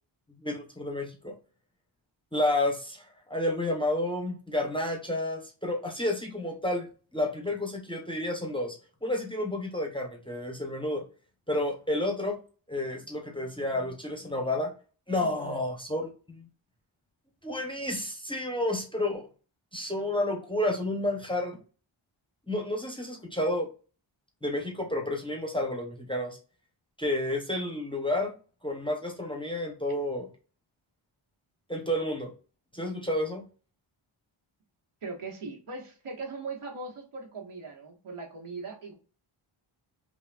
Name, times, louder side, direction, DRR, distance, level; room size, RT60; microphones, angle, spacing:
voice 1, 0.4-1.3 2.3-6.9 7.1-11.0 11.5-12.4 12.7-14.7 15.1-16.5 17.4-19.3 19.7-21.6 22.5-23.7 24.4-26.4 27.0-28.4 28.6-30.3 31.7-32.3 32.7-33.4, left 1 dB, 10° left, 2 dB, 0.5 m, -30 dB
voice 2, 15.2-15.6 35.0-39.0, right 3 dB, 90° right, 1 dB, 1.4 m, -40 dB
5.4 x 2.4 x 2.3 m, 0.36 s
wide cardioid pair, 175°, 49 cm